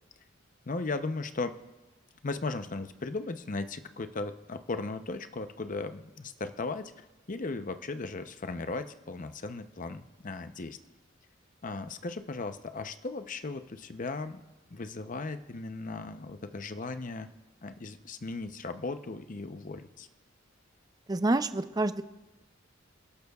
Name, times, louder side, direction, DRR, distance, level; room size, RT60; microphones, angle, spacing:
voice 1, 0.7-1.6 2.2-10.8 11.6-14.4 14.7-17.3 17.6-20.1, left 3 dB, 40° left, 9 dB, 0.7 m, -37 dB
voice 2, 21.1-22.0, right 2 dB, 20° right, 11 dB, 0.5 m, -27 dB
28.0 x 12.0 x 2.3 m, 1.1 s
head